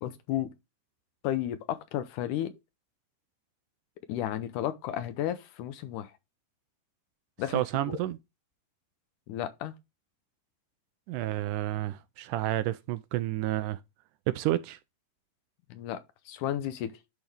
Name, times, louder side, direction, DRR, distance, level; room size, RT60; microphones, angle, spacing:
voice 1, 0.0-0.5 1.2-2.5 4.1-6.1 7.4-8.1 9.3-9.7 15.7-16.0 16.3-17.0, left 12 dB, 75° left, 2.0 m, -33 dB
voice 2, 7.5-8.2 11.1-13.8 14.3-14.8, right 15 dB, 80° right, 1.9 m, -30 dB
10.5 x 3.8 x 3.4 m
omnidirectional pair, 3.9 m